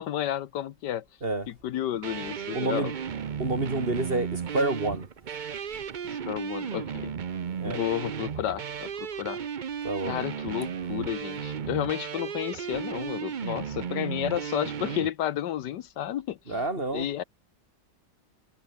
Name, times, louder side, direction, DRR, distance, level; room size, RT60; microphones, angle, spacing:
voice 1, 0.0-1.0 1.5-2.9 6.1-7.1 7.6-9.4 10.1-16.6 16.9-17.2, left 11 dB, 75° left, 1.4 m, -32 dB
sound 1, 2.0-15.1, right 7 dB, 75° right, 0.4 m, -34 dB
voice 2, 2.5-2.9 3.4-5.1 7.6-7.8 9.8-10.1 16.5-17.1, right 2 dB, 30° right, 3.2 m, -28 dB
omnidirectional pair, 1.9 m